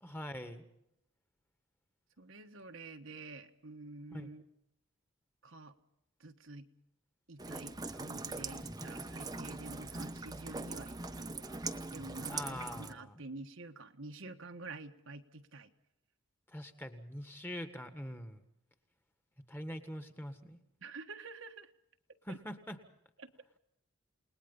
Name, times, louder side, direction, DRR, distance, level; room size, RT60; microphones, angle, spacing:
voice 1, 0.0-0.6 4.1-4.3 12.3-13.2 16.5-18.4 19.5-20.6 22.2-22.8, equal, 10° left, 8 dB, 1.7 m, -43 dB
voice 2, 2.2-4.5 5.4-5.7 6.2-6.7 7.3-11.6 11.9-15.7 20.8-21.7 22.3-22.4 23.2-23.3, right 3 dB, 60° right, 6 dB, 1.4 m, -49 dB
Rain, 7.4-12.9, right 3 dB, 15° right, 1.0 m, -42 dB
29.0 x 20.0 x 5.6 m, 0.79 s
head